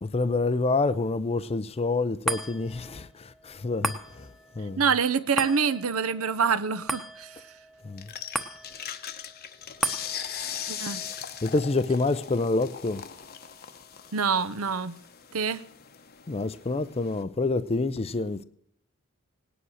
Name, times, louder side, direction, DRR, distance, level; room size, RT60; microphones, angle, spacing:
voice 1, 0.0-4.3 4.6-4.8 7.8-8.1 11.4-13.0 16.3-18.4, left 3 dB, 25° left, 0.5 m, -27 dB
sound 1, 2.3-14.8 15.3-15.4, right 1 dB, ahead, 1.0 m, -38 dB
voice 2, 4.8-7.4 10.7-11.0 14.1-15.0 15.3-15.6, right 6 dB, 70° right, 0.7 m, -26 dB
sound 2, 8.0-17.2, left 9 dB, 45° left, 0.9 m, -40 dB
18.0 x 10.0 x 6.4 m
head